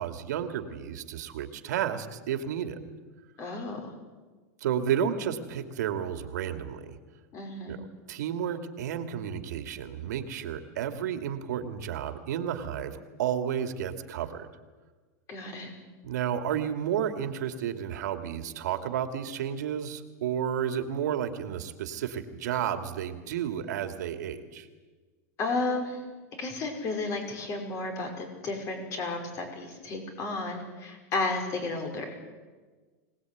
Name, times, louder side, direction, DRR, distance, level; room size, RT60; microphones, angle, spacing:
voice 1, 0.0-2.8 4.6-7.0 7.7-7.8 8.1-14.5 16.0-24.7, right 9 dB, 80° right, 7 dB, 2.6 m, -32 dB
voice 2, 3.4-3.9 7.3-7.8 15.3-15.7 25.4-26.0 26.4-32.2, left 3 dB, 35° left, 4 dB, 5.7 m, -33 dB
24.5 x 19.0 x 9.4 m, 1.4 s
supercardioid pair, 150°, 9 cm